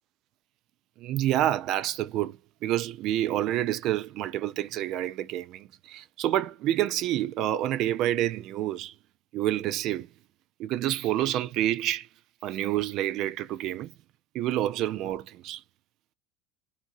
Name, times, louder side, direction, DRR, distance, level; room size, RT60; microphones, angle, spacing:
voice 1, 1.0-8.9 9.3-10.1 10.6-12.1 12.4-13.9 14.3-15.6, right 13 dB, 55° right, 0.3 m, -28 dB
2.8 x 2.6 x 2.5 m
supercardioid pair, 115°, 0 cm